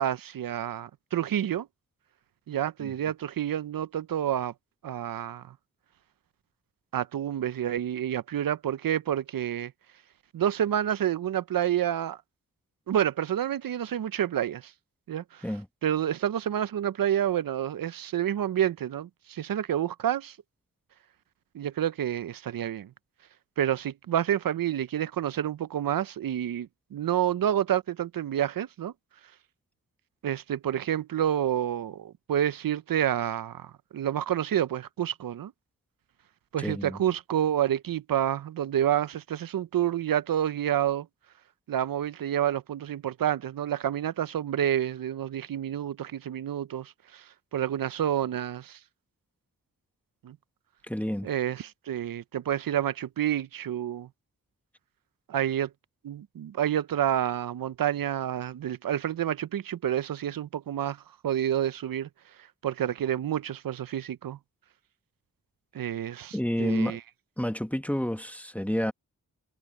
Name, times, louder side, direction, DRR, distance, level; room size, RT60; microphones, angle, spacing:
voice 1, 0.0-1.7 2.5-4.5 4.8-5.5 6.9-9.7 10.3-12.2 12.9-14.7 15.1-15.4 15.8-20.4 21.5-22.9 23.6-28.9 30.2-35.5 36.5-41.1 41.7-47.2 47.5-48.8 50.2-50.4 51.2-54.1 55.3-55.7 56.0-61.0 61.2-62.1 62.6-64.4 65.7-67.0, right 10 dB, 85° right, 0.5 m, -29 dB
voice 2, 36.6-37.0 50.9-51.3 66.3-67.0 67.4-68.9, equal, 5° left, 1.3 m, -29 dB
wide cardioid pair, 105°, 33 cm